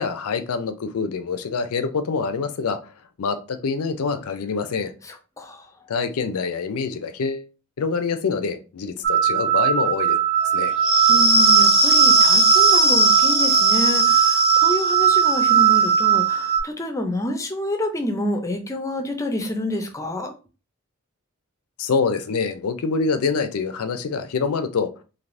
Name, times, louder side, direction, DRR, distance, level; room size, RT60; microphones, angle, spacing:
voice 1, 0.0-2.8 3.2-4.9 5.9-7.5 7.8-10.2 10.5-10.7 21.8-24.9, left 5 dB, 75° left, 0.5 m, -25 dB
voice 2, 5.0-5.7 11.1-20.3, left 1 dB, 15° left, 0.4 m, -28 dB
sound 1, 9.0-16.6, right 5 dB, 55° right, 0.9 m, -17 dB
3.3 x 2.6 x 2.5 m
head